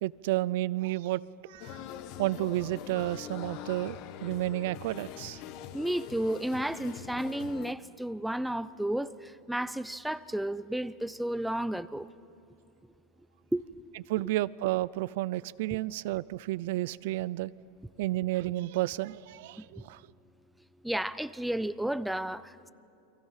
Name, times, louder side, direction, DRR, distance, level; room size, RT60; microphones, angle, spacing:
voice 1, 0.0-1.8 2.2-5.4 14.1-17.5 18.0-20.0, right 17 dB, 70° right, 0.5 m, -31 dB
sound 1, 1.6-7.7, left 10 dB, 50° left, 1.1 m, -43 dB
voice 2, 5.7-12.1 13.5-13.6 15.7-15.8 19.6-19.7 20.8-22.7, right 1 dB, ahead, 0.5 m, -32 dB
29.5 x 24.0 x 5.7 m
supercardioid pair, 135°, 0 cm